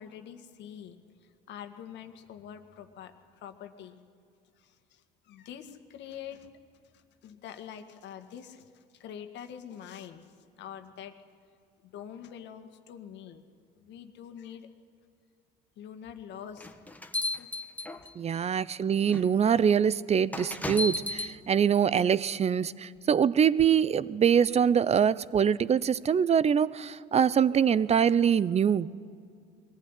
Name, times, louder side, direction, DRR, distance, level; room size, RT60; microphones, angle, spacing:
voice 1, 0.0-4.0 4.6-6.5 6.9-11.1 11.8-13.4 13.8-14.7 15.8-16.9 17.4-17.5 18.0-18.1, left 9 dB, 65° left, 7 dB, 1.8 m, -45 dB
sound 1, 16.6-18.4 19.1-19.3 20.3-21.3, left 2 dB, 10° left, 1.4 m, -33 dB
voice 2, 18.2-28.9, right 8 dB, 35° right, 19 dB, 0.6 m, -24 dB
21.5 x 15.5 x 9.9 m, 2.3 s
supercardioid pair, 85°, 19 cm